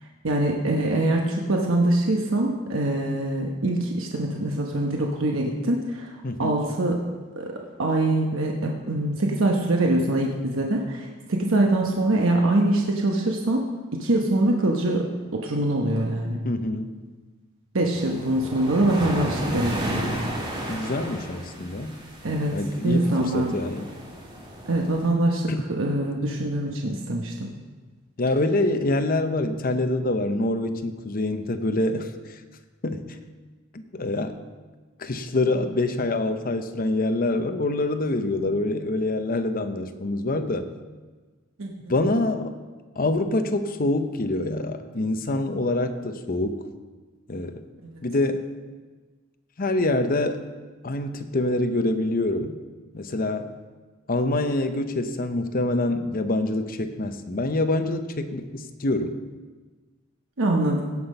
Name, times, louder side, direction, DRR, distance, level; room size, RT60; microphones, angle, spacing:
voice 1, 0.0-7.0 7.4-7.5 7.8-15.1 15.3-16.4 17.7-20.2 22.2-22.5 22.8-23.6 24.7-25.5 25.8-27.5 41.6-41.7 47.8-48.0 60.4-60.8, right 1 dB, 75° right, 0 dB, 1.1 m, -24 dB
voice 2, 6.2-6.6 16.4-16.9 20.7-22.0 22.5-23.9 25.5-25.7 28.2-32.1 32.8-33.0 33.7-34.3 35.0-40.7 41.9-42.5 43.0-46.6 47.3-47.6 48.0-48.4 49.6-50.4 50.8-52.6 52.9-53.5 54.1-59.2, left 2 dB, 45° left, 8 dB, 0.8 m, -25 dB
sound 1, 17.9-25.1, right 1 dB, 25° right, 2.3 m, -34 dB
17.0 x 5.9 x 5.4 m, 1.3 s
head